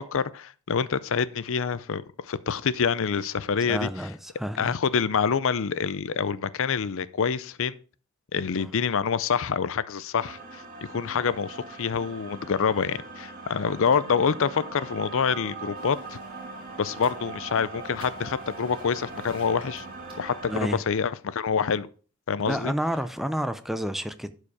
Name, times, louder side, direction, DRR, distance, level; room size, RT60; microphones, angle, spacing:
voice 1, 0.0-3.9 4.6-7.8 8.3-10.6 10.9-16.2 16.8-19.9 20.2-21.9 22.3-22.7, left 6 dB, 60° left, 0.5 m, -26 dB
voice 2, 3.7-4.7 8.5-8.7 20.5-20.8 22.4-24.3, equal, ahead, 0.5 m, -30 dB
sound 1, 10.2-20.7, right 3 dB, 40° right, 2.3 m, -41 dB
sound 2, 15.8-20.9, right 2 dB, 25° right, 3.0 m, -55 dB
11.5 x 5.0 x 4.8 m
head